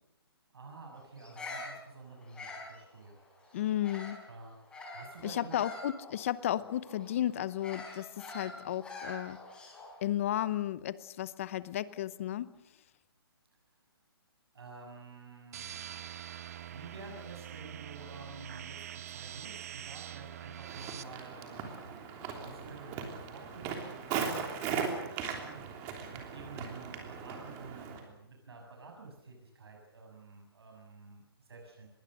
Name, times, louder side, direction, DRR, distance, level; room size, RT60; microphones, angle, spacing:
voice 1, 0.5-3.2 3.4-3.6 4.3-5.6 14.5-16.0 16.6-31.9, right 3 dB, 75° right, 1 dB, 7.1 m, -50 dB
Bird vocalization bird call bird song, 1.2-4.3 4.7-10.0, left 2 dB, 5° left, 5.0 m, -46 dB
voice 2, 3.5-4.3 5.2-9.4 10.0-12.5, left 12 dB, 30° left, 17 dB, 0.8 m, -33 dB
sound 1, 15.5-21.0, right 10 dB, 40° right, 1.1 m, -44 dB
Walk footsteps, 20.6-28.0, right 6 dB, 20° right, 3.2 m, -38 dB
25.0 x 21.5 x 6.6 m, 0.83 s
hypercardioid pair, 160°, 13 cm